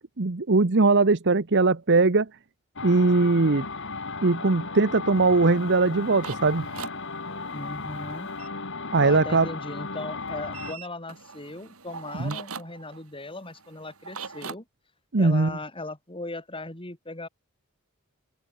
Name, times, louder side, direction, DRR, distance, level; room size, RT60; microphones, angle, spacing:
voice 1, 0.2-2.3 2.8-3.7 4.2-6.7 8.9-9.5 12.2-12.3 15.1-15.5, right 3 dB, 55° right, 0.9 m, -20 dB
sound 1, 2.8-10.7, left 3 dB, 55° left, 5.0 m, -35 dB
sound 2, 5.5-8.5 10.5-14.6, right 5 dB, 75° right, 3.3 m, -42 dB
voice 2, 7.5-8.3 9.0-14.6 15.2-17.3, left 2 dB, 25° left, 4.3 m, -38 dB
open air
head